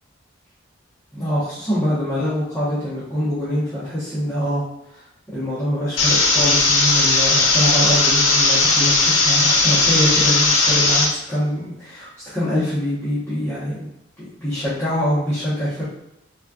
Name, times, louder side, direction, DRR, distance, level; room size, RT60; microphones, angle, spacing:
voice 1, 1.1-13.9 14.2-15.8, equal, 10° left, -14 dB, 1.0 m, -24 dB
sound 1, 6.0-11.0, left 3 dB, 85° left, 0.8 m, -17 dB
4.1 x 2.4 x 2.3 m, 0.86 s
head